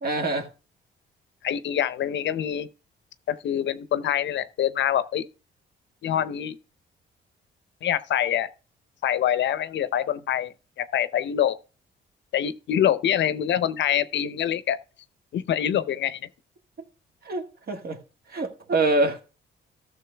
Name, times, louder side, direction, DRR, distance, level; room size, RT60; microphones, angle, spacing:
voice 1, 0.0-0.5 17.2-18.0 18.3-19.2, right 2 dB, 50° right, 1.8 m, -25 dB
voice 2, 1.4-2.7 3.3-5.3 6.0-6.6 7.8-8.5 9.0-11.6 12.3-14.8 15.3-16.2, left 10 dB, 65° left, 0.7 m, -25 dB
13.5 x 6.6 x 3.4 m
cardioid pair, 90°, 20 cm